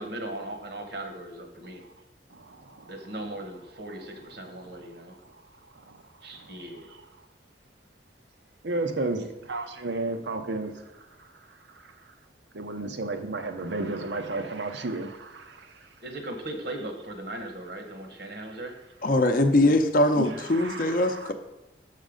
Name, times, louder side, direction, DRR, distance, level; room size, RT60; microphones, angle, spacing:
voice 1, 0.0-1.8 2.9-5.2 6.2-6.9 9.2-9.3 16.0-18.8, right 1 dB, 65° right, 4 dB, 1.2 m, -38 dB
voice 2, 2.3-3.2 4.1-4.9 5.2-5.3 5.7-6.0 6.3-7.1 8.6-12.1 12.5-15.9 20.1-21.3, right 2 dB, 80° right, 6 dB, 0.8 m, -34 dB
voice 3, 19.0-21.3, left 1 dB, 50° left, 6 dB, 0.6 m, -22 dB
6.5 x 5.7 x 5.0 m, 1.0 s
head